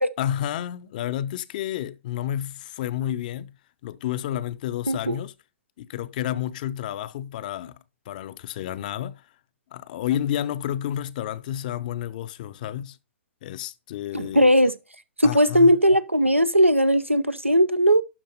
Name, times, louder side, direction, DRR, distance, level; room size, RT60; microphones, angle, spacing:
voice 1, 0.2-3.5 3.8-5.3 5.8-7.8 8.1-9.2 9.7-13.0 13.4-14.5 15.2-15.8, left 11 dB, 40° left, 0.6 m, -30 dB
voice 2, 14.1-14.7 15.2-18.0, equal, 90° right, 0.7 m, -18 dB
12.0 x 4.1 x 4.0 m
figure-of-eight pair, 115°, 7 cm